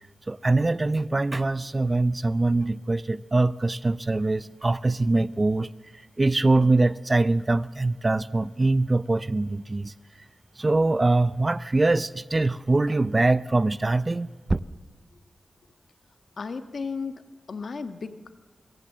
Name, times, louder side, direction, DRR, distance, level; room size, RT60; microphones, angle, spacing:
voice 1, 0.3-5.7 6.2-9.9 10.6-14.6, right 2 dB, 35° right, 16 dB, 0.7 m, -23 dB
voice 2, 16.4-18.3, left 4 dB, 75° left, 9 dB, 1.6 m, -34 dB
25.0 x 23.0 x 7.5 m, 1.4 s
cardioid pair, 65°, 0 cm